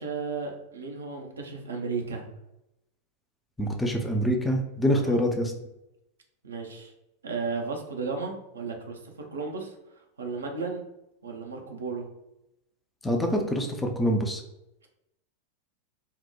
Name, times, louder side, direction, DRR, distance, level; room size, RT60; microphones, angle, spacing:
voice 1, 0.0-2.3 5.0-5.2 6.4-6.9 7.2-9.8 10.2-10.8 11.2-12.1, right 4 dB, 70° right, 2 dB, 0.5 m, -34 dB
voice 2, 3.6-5.5 13.0-14.4, equal, 10° left, 3 dB, 0.4 m, -25 dB
2.8 x 2.0 x 2.2 m, 0.90 s
figure-of-eight pair, 90°, 0 cm